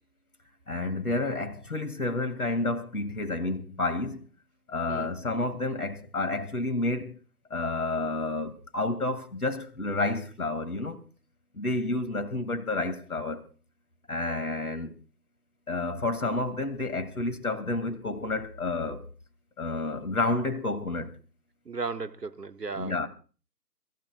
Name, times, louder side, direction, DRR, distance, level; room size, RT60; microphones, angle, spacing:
voice 1, 0.7-4.3 4.7-7.2 7.5-11.0 11.5-13.4 14.1-14.9 15.7-19.0 19.6-21.1 22.8-23.1, left 2 dB, 60° left, 2.4 m, -30 dB
voice 2, 21.6-23.1, right 4 dB, 75° right, 1.3 m, -35 dB
29.5 x 15.5 x 2.3 m
figure-of-eight pair, 155°, 49 cm